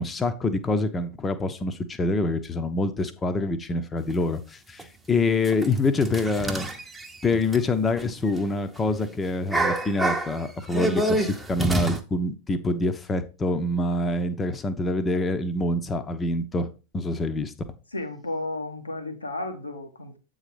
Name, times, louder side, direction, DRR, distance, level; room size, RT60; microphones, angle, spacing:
voice 1, 0.0-6.7 7.2-16.7 16.9-17.5, left 2 dB, 15° left, 0.9 m, -26 dB
sound 1, 4.1-4.2 4.8-4.9 5.4-8.4 8.7-8.9 9.3-12.0, right 1 dB, 10° right, 1.0 m, -27 dB
voice 2, 17.9-20.2, left 2 dB, 80° left, 1.3 m, -33 dB
8.1 x 4.0 x 4.9 m
figure-of-eight pair, 90°, 0 cm